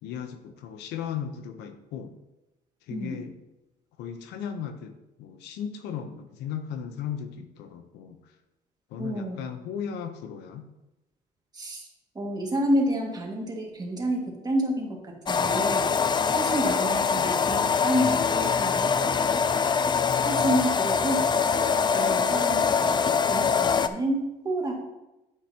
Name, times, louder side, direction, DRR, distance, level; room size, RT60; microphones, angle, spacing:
voice 1, 0.0-2.2 2.8-3.3 4.0-8.4 8.9-10.7, left 8 dB, 85° left, 8 dB, 0.8 m, -36 dB
voice 2, 9.0-9.4 11.5-11.9 12.2-15.9 16.3-19.6 20.2-21.3 21.9-24.8, right 1 dB, 25° right, -1 dB, 2.0 m, -29 dB
sound 1, 15.3-23.9, left 6 dB, 25° left, 0.4 m, -24 dB
9.0 x 8.2 x 2.9 m, 0.97 s
cardioid pair, 110°, 17 cm